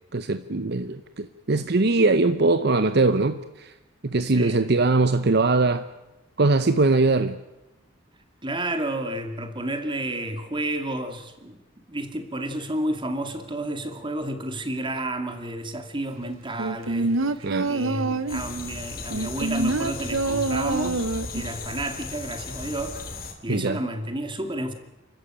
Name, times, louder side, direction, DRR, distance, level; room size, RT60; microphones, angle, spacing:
voice 1, 0.1-3.7 4.0-5.8 6.4-7.4 17.4-17.7 23.5-23.8, right 3 dB, 55° right, 11 dB, 0.8 m, -21 dB
voice 2, 4.3-4.7 8.4-11.6 11.9-24.7, right 1 dB, 25° right, 7 dB, 2.3 m, -31 dB
sound 1, 16.6-18.5 19.1-21.5 21.8-21.9, right 3 dB, 85° right, 0.9 m, -26 dB
sound 2, 18.3-23.3, left 3 dB, 50° left, 3.3 m, -36 dB
30.0 x 14.0 x 9.0 m, 1.0 s
head